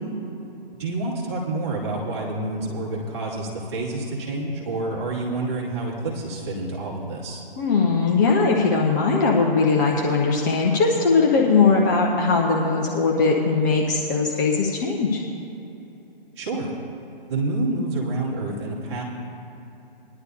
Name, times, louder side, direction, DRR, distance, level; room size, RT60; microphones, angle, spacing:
voice 1, 0.8-7.4 16.4-16.7 17.3-19.0, right 2 dB, 30° right, -4 dB, 2.4 m, -28 dB
voice 2, 7.6-15.2, left 4 dB, 20° left, -1 dB, 0.7 m, -20 dB
20.5 x 11.0 x 2.7 m, 3.0 s
figure-of-eight pair, 135°, 30 cm